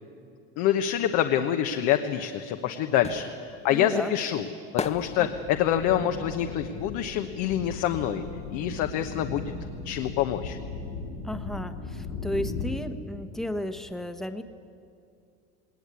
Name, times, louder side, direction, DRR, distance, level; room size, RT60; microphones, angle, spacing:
voice 1, 0.6-3.3 3.6-4.5 4.8-8.2 8.5-9.5 9.8-10.6, left 10 dB, 65° left, 6 dB, 1.2 m, -26 dB
sound 1, 2.2-8.0 8.3-9.9 10.1-10.2, left 5 dB, 20° left, 0.9 m, -39 dB
voice 2, 3.7-4.4 5.2-5.3 11.2-14.4, left 1 dB, ahead, 7 dB, 1.3 m, -34 dB
sound 2, 4.8-12.8, left 4 dB, 90° left, 4.0 m, -37 dB
19.0 x 19.0 x 8.4 m, 2.4 s
hypercardioid pair, 90°, 32 cm